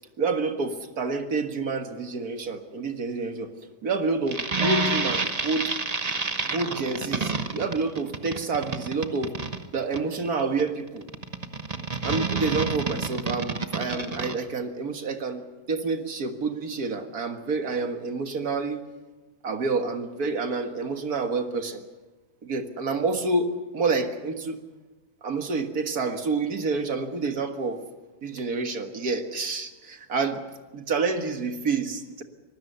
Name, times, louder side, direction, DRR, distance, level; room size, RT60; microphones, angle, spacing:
voice 1, 0.2-3.5 3.8-5.7 6.4-9.4 9.7-11.0 12.0-18.8 19.4-21.8 22.4-24.6 25.2-27.8 28.2-30.4 30.7-32.2, right 4 dB, 60° right, 6 dB, 2.1 m, -28 dB
sound 1, 4.3-14.3, right 3 dB, 25° right, 1.1 m, -29 dB
25.5 x 19.5 x 6.8 m, 1.2 s
omnidirectional pair, 1.8 m